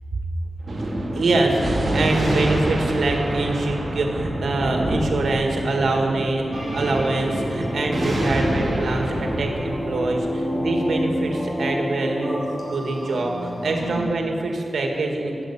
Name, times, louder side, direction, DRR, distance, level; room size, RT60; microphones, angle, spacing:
Thunder, 0.6-11.5, right 1 dB, 40° right, 2.4 m, -27 dB
voice 1, 1.1-12.4 12.7-15.4, right 2 dB, 85° right, 1 dB, 2.0 m, -24 dB
sound 1, 6.5-14.0, equal, 15° left, 2.5 m, -29 dB
14.5 x 8.0 x 8.7 m, 2.8 s
wide cardioid pair, 175°, 0 cm